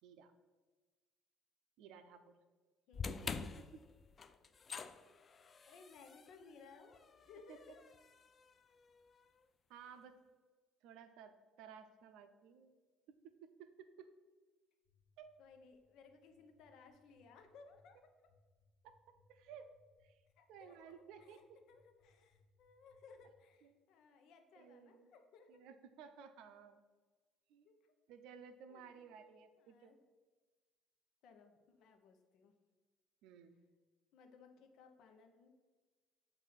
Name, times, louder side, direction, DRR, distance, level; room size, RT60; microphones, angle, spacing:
voice 1, 0.0-0.3 1.8-2.4 3.1-3.4 3.7-3.8 7.5-7.6 9.7-10.2 10.8-12.7 13.1-14.1 15.2-15.3 18.8-19.0 19.3-19.7 20.0-20.2 20.5-21.6 23.6-23.7 24.6-25.1 25.5-26.8 27.5-27.7 28.1-30.0 33.2-33.6, right 7 dB, 80° right, 9 dB, 0.6 m, -56 dB
voice 2, 2.9-3.2 5.7-8.0 15.4-18.0 20.4-25.6 27.6-27.9 28.7-28.8 29.6-30.0 31.2-32.5 34.1-35.5, left 4 dB, 70° left, 5 dB, 0.8 m, -61 dB
sound 1, 2.9-9.2, left 5 dB, 30° left, 0.3 m, -48 dB
sound 2, 14.8-23.3, left 6 dB, 5° left, 2.0 m, -77 dB
7.6 x 2.7 x 5.7 m, 1.3 s
cardioid pair, 120°, 0 cm